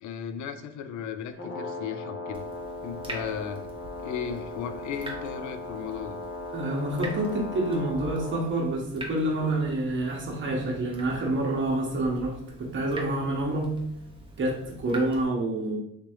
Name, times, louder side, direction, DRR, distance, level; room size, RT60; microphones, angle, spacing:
voice 1, 0.0-2.4 2.8-3.7 4.0-6.2, left 7 dB, 75° left, 9 dB, 0.5 m, -35 dB
Brass instrument, 1.3-8.5, left 2 dB, 45° left, 1.1 m, -38 dB
Water tap faucet / Drip, 2.3-15.2, right 1 dB, 15° right, 0.9 m, -44 dB
voice 2, 6.5-13.7 14.4-15.8, right 1 dB, 40° right, -1 dB, 1.1 m, -28 dB
3.3 x 3.0 x 3.1 m, 0.75 s
cardioid pair, 90°, 30 cm